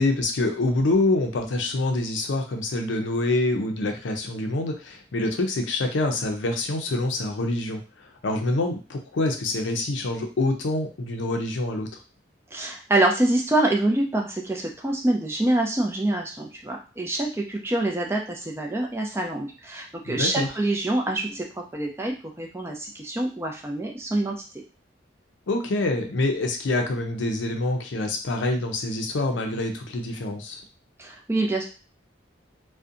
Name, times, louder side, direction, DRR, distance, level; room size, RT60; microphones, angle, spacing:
voice 1, 0.0-11.9 20.0-20.5 25.5-30.6, left 2 dB, 85° left, 4 dB, 0.5 m, -26 dB
voice 2, 12.5-24.4 31.0-31.6, right 1 dB, 15° right, 1 dB, 0.4 m, -26 dB
2.6 x 2.1 x 2.5 m, 0.33 s
head